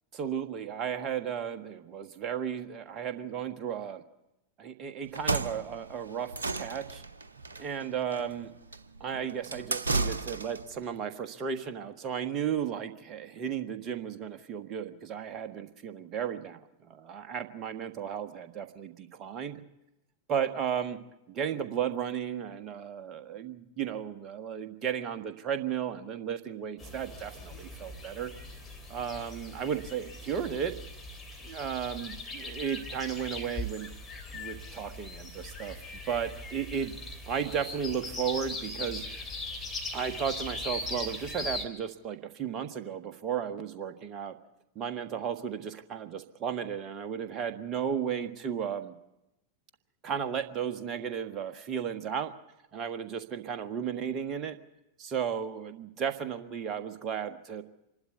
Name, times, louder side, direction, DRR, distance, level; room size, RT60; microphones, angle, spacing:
voice 1, 0.1-4.0 4.6-7.0 7.6-8.5 9.0-19.6 20.3-21.0 21.3-28.3 28.9-30.8 31.4-33.9 34.3-35.8 36.1-36.9 37.3-39.0 39.9-44.4 44.7-48.9 50.0-52.3 52.7-54.6 55.0-57.6, right 8 dB, 30° right, 8 dB, 1.4 m, -34 dB
sound 1, 5.0-10.7, right 3 dB, 75° right, 0.7 m, -33 dB
sound 2, 26.8-41.6, left 2 dB, 15° left, 3.2 m, -40 dB
26.5 x 12.0 x 9.3 m, 0.93 s
figure-of-eight pair, 90°, 0 cm